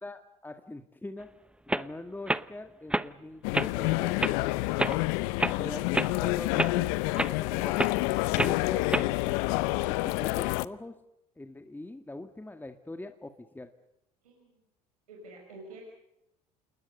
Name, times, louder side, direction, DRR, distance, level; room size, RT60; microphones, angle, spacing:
voice 1, 0.0-1.3 1.7-4.6 4.8-5.0 5.6-5.8 6.2-6.9 7.1-7.8 8.3-9.4 9.9-10.9 11.4-13.7, left 2 dB, 10° left, 6 dB, 1.9 m, -43 dB
sound 1, 1.2-1.3 1.7-1.9 2.3-2.4 2.9-3.1 3.5-3.7 4.2-4.3 4.8-5.0 5.4-5.6 5.9-6.1 6.6-6.7 7.2-7.3 7.8-8.0 8.4-8.6 8.9-9.1, right 1 dB, 5° right, 0.9 m, -28 dB
sound 2, 3.4-10.7, left 21 dB, 70° left, 0.8 m, -28 dB
voice 2, 5.4-6.0 8.0-8.3 14.2-14.6 15.1-15.8, right 2 dB, 90° right, -1 dB, 5.4 m, -50 dB
28.5 x 20.0 x 6.8 m, 0.85 s
hypercardioid pair, 65°, 18 cm